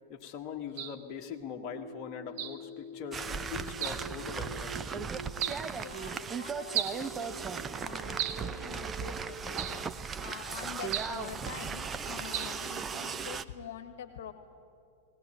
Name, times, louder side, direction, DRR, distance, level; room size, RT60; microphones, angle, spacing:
voice 1, 0.1-5.0, left 7 dB, 40° left, 2 dB, 1.7 m, -42 dB
sound 1, 0.8-1.0 2.4-2.6 3.8-4.1 5.4-5.7 6.7-7.0 8.2-8.5 9.6-9.9 10.9-11.2 12.3-12.6, right 10 dB, 50° right, 1.2 m, -35 dB
sound 2, 1.2-9.4, right 2 dB, 70° right, 4.4 m, -47 dB
sound 3, 3.1-13.4, right 6 dB, 20° right, 0.7 m, -37 dB
voice 2, 5.7-14.3, left 8 dB, 65° left, 9 dB, 1.4 m, -45 dB
20.0 x 18.0 x 9.1 m, 2.5 s
figure-of-eight pair, 95°, 0 cm